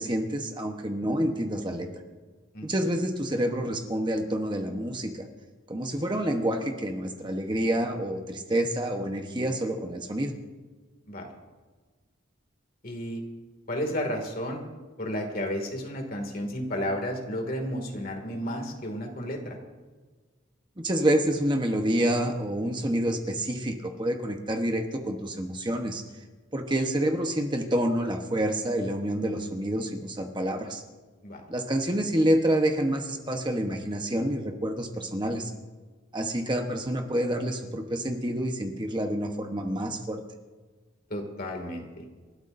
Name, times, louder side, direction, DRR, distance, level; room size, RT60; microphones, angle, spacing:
voice 1, 0.0-1.9 2.6-5.2 5.7-10.3 20.8-26.1 26.5-30.8 31.5-35.5 36.1-40.2, right 1 dB, 20° right, 3 dB, 1.1 m, -28 dB
voice 2, 2.5-2.9 11.1-11.3 12.8-13.2 13.7-14.6 15.0-19.6 31.2-31.4 41.1-42.0, equal, 45° left, 3 dB, 2.4 m, -32 dB
28.0 x 13.0 x 2.7 m, 1.4 s
head